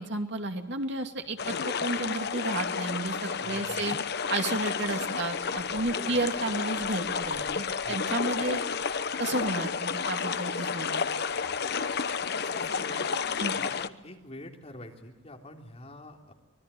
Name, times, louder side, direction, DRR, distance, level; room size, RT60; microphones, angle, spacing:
voice 1, 0.0-4.0 4.3-8.6 9.2-11.0 13.4-13.5, right 2 dB, 65° right, 5 dB, 2.5 m, -32 dB
sound 1, 1.4-13.9, left 6 dB, 60° left, 0.9 m, -31 dB
voice 2, 3.4-3.9 5.9-6.2 7.4-7.5 7.8-8.0 8.3-8.4 12.3-16.3, left 1 dB, 35° left, 1 dB, 3.6 m, -46 dB
25.0 x 21.5 x 8.5 m, 1.1 s
head